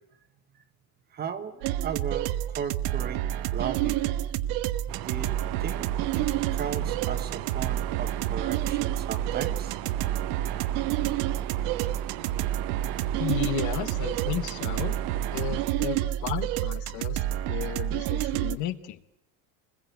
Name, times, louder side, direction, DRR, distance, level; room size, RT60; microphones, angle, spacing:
voice 1, 1.1-3.2 3.5-4.2 5.0-5.3 5.6-9.8, right 7 dB, 25° right, 9 dB, 1.4 m, -36 dB
sound 1, 1.6-18.6, right 13 dB, 85° right, 1.2 m, -29 dB
sound 2, 4.9-15.7, right 15 dB, 60° right, 1.1 m, -38 dB
voice 2, 13.2-15.0 15.3-19.0, left 12 dB, 50° left, 11 dB, 1.2 m, -34 dB
26.0 x 21.0 x 8.1 m, 0.77 s
cardioid pair, 175°, 39 cm